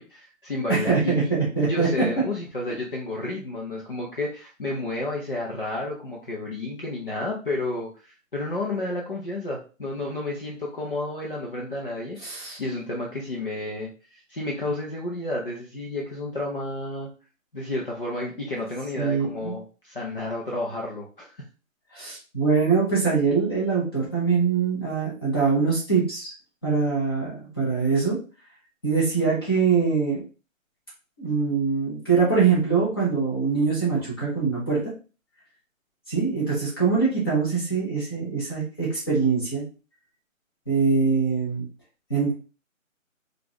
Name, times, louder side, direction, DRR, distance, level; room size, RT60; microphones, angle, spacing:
voice 1, 0.0-1.3 1.6-12.2 12.6-17.1 17.5-21.5, left 2 dB, 40° left, -3 dB, 0.7 m, -31 dB
voice 2, 0.7-1.9 12.2-12.6 19.0-19.5 21.9-26.3 26.6-28.2 28.8-30.2 31.2-34.8 36.1-39.6 40.7-41.7 42.1-42.3, right 5 dB, 20° left, -6 dB, 1.0 m, -23 dB
3.7 x 2.5 x 2.9 m, 0.35 s
figure-of-eight pair, 170°, 40 cm